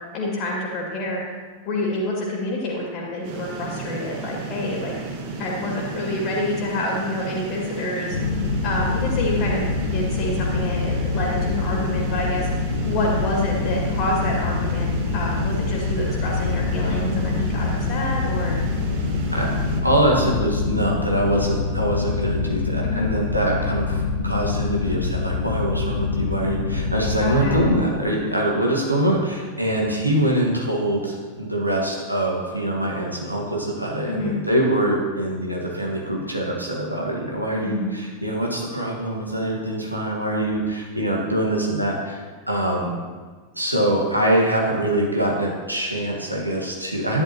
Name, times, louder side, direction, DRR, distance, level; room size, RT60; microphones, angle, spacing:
voice 1, 0.1-1.2 1.6-5.0 5.4-8.2 8.6-12.5 12.8-18.6 22.8-23.2 27.2-27.7 34.1-34.4 37.6-37.9, left 1 dB, 40° left, -2 dB, 2.1 m, -27 dB
sound 1, 3.2-19.8, right 4 dB, 50° right, 1.4 m, -33 dB
sound 2, 8.1-27.8, left 4 dB, 70° left, 0.7 m, -25 dB
voice 2, 19.8-42.9 43.5-47.2, right 1 dB, 85° right, -2 dB, 1.7 m, -24 dB
11.5 x 10.0 x 3.0 m, 1.4 s
figure-of-eight pair, 90°, 0 cm